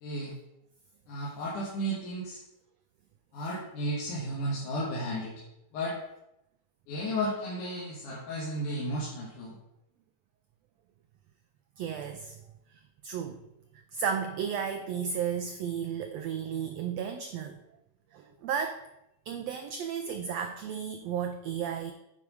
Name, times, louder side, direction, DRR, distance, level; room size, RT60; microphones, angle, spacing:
voice 1, 0.0-0.3 1.1-2.4 3.3-5.3 5.7-6.0 6.9-9.5, equal, 75° left, -5 dB, 3.0 m, -33 dB
voice 2, 11.8-12.4 13.0-13.4 13.9-17.6 18.1-18.8 19.3-21.9, right 7 dB, 90° right, 6 dB, 1.4 m, -33 dB
9.5 x 5.0 x 5.3 m, 0.87 s
omnidirectional pair, 3.7 m